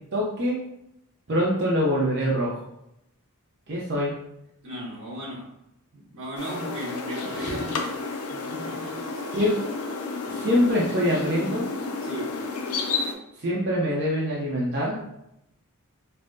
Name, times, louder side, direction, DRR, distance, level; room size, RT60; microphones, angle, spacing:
voice 1, 0.1-0.6 1.3-2.6 3.7-4.1 7.3-7.6 9.3-9.5 10.3-11.6 13.4-15.0, equal, 50° right, -5 dB, 0.7 m, -24 dB
voice 2, 4.6-5.5 5.9-9.1 12.0-12.4, right 1 dB, 85° right, -4 dB, 1.3 m, -37 dB
sound 1, 6.4-13.1, left 4 dB, 80° left, 0.5 m, -31 dB
5.3 x 2.1 x 2.6 m, 0.83 s
head